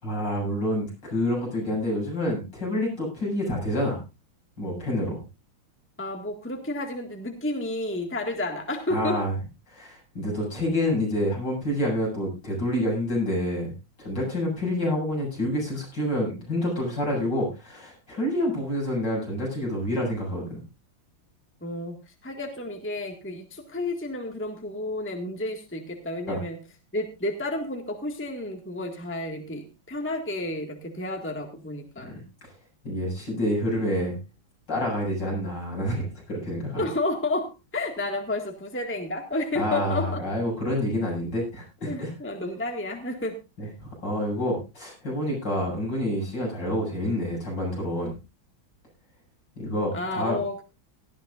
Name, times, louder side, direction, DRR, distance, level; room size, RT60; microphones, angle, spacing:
voice 1, 0.0-4.0 4.6-5.2 8.9-9.3 9.7-13.7 14.0-20.6 26.3-26.4 32.0-32.1 32.8-34.2 34.7-36.9 39.6-42.1 43.6-48.2 49.6-50.4, left 1 dB, 60° left, -2 dB, 8.7 m, -28 dB
voice 2, 6.0-9.2 21.6-26.6 26.9-32.1 36.8-40.2 41.9-43.7 49.9-50.6, left 2 dB, 5° left, 4 dB, 1.7 m, -31 dB
17.5 x 13.5 x 2.5 m, 0.28 s
omnidirectional pair, 2.1 m